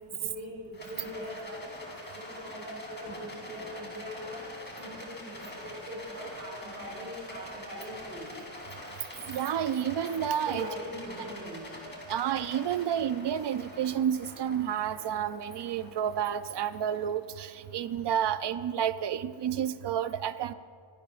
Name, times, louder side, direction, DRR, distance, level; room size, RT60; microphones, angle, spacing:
voice 1, 0.1-8.3 10.4-11.7, equal, 25° right, -7 dB, 4.3 m, -42 dB
Rattle, 0.7-18.1, left 1 dB, 25° left, 2.8 m, -45 dB
voice 2, 9.3-10.7 12.1-20.5, right 9 dB, 65° right, 13 dB, 0.6 m, -30 dB
23.5 x 16.0 x 2.5 m, 2.1 s
wide cardioid pair, 175°, 46 cm